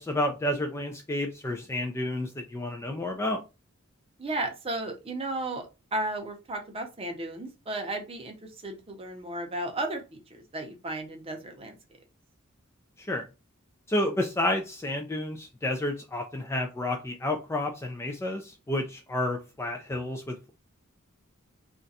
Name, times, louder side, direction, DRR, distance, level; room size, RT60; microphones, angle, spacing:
voice 1, 0.0-3.4 13.0-13.3 13.9-20.5, left 1 dB, 10° left, 3 dB, 0.3 m, -30 dB
voice 2, 4.2-8.3 8.6-11.8, right 2 dB, 25° right, 4 dB, 0.6 m, -34 dB
2.4 x 2.2 x 4.0 m, 0.28 s
head